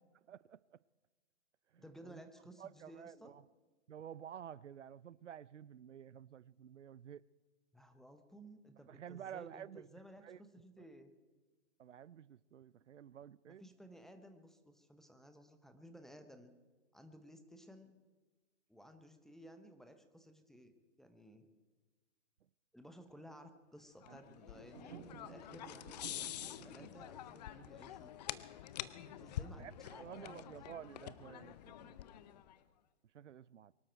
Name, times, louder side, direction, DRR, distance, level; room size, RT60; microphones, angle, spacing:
voice 1, 0.3-0.8 1.7-2.2 2.6-3.5 3.9-7.3 8.9-9.9 10.2-10.4 11.8-13.6 24.1-24.4 29.6-32.0 33.1-33.7, right 9 dB, 90° right, 0.6 m, -51 dB
voice 2, 1.8-3.4 7.7-11.1 13.6-16.6 16.9-17.9 18.7-21.5 22.7-28.1 29.0-30.5, equal, ahead, 0.7 m, -57 dB
sound 1, 24.0-32.6, left 12 dB, 35° left, 0.7 m, -47 dB
sound 2, 24.5-27.1, right 6 dB, 50° right, 4.9 m, -54 dB
24.0 x 12.5 x 4.5 m
hypercardioid pair, 135°, 35 cm